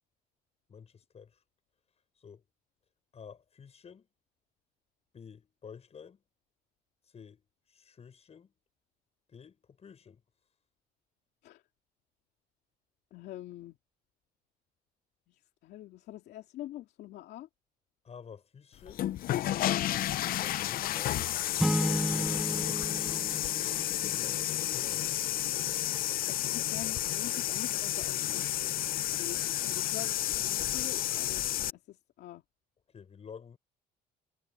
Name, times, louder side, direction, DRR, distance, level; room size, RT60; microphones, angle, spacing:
voice 1, 0.7-1.4 2.2-2.4 3.1-4.1 5.1-6.2 7.1-8.5 9.3-10.2 18.0-19.0 19.9-21.2 22.0-23.4 24.0-25.1 32.9-33.6, left 6 dB, 40° left, 6.9 m, -51 dB
voice 2, 13.1-13.8 15.3-17.5 26.3-28.7 29.2-31.5 31.7-32.4, left 14 dB, 75° left, 2.7 m, -45 dB
sound 1, 18.8-31.7, left 13 dB, 60° left, 0.6 m, -31 dB
sound 2, 21.6-24.4, equal, ahead, 0.4 m, -32 dB
cardioid pair, 110°, 17 cm